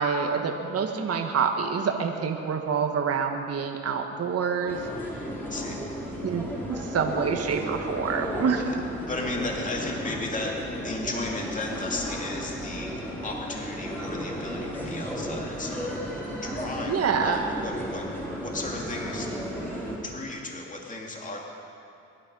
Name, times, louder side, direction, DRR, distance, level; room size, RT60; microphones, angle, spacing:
voice 1, 0.0-4.9 6.2-8.7 16.9-17.4, right 6 dB, 55° right, 3 dB, 1.6 m, -27 dB
sound 1, 4.7-20.0, equal, 5° left, 4.8 m, -34 dB
voice 2, 5.5-5.8 8.5-8.8 9.1-10.6 10.8-16.0 16.4-18.1 18.4-19.3 20.0-21.4, left 2 dB, 25° left, -1 dB, 2.5 m, -35 dB
22.5 x 11.5 x 5.5 m, 2.6 s
cardioid pair, 90°, 30 cm